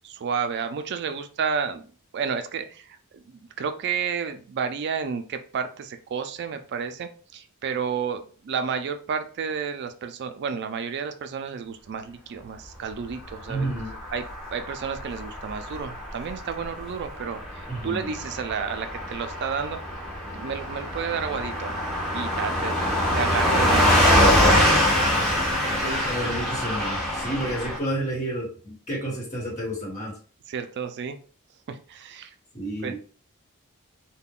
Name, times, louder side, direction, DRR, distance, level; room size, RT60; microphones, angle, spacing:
voice 1, 0.0-1.8 2.1-13.7 14.1-14.2 14.5-19.8 20.3-21.8 22.1-22.7 23.1-25.0 25.8-26.0 30.5-31.2 31.7-32.3 32.8-32.9, right 6 dB, 50° right, 8 dB, 0.3 m, -31 dB
Car passing by / Truck, 13.4-27.8, equal, ahead, 0.7 m, -24 dB
voice 2, 13.5-13.9 17.7-18.1 23.3-23.5 23.8-24.0 25.8-30.1 32.5-32.9, right 1 dB, 35° left, -4 dB, 1.4 m, -31 dB
2.4 x 2.1 x 3.5 m, 0.40 s
head